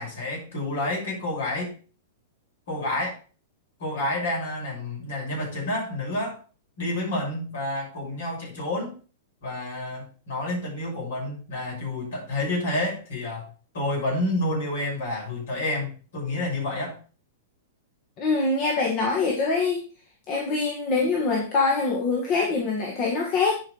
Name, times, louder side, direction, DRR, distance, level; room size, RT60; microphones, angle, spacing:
voice 1, 0.0-1.7 2.7-3.2 3.8-6.4 6.8-8.9 9.4-13.5 13.7-17.0, left 1 dB, 60° left, -1 dB, 6.0 m, -29 dB
voice 2, 18.2-19.8 20.3-23.6, left 4 dB, 40° left, 0 dB, 2.0 m, -24 dB
10.5 x 5.2 x 4.7 m, 0.36 s
figure-of-eight pair, 100°, 0 cm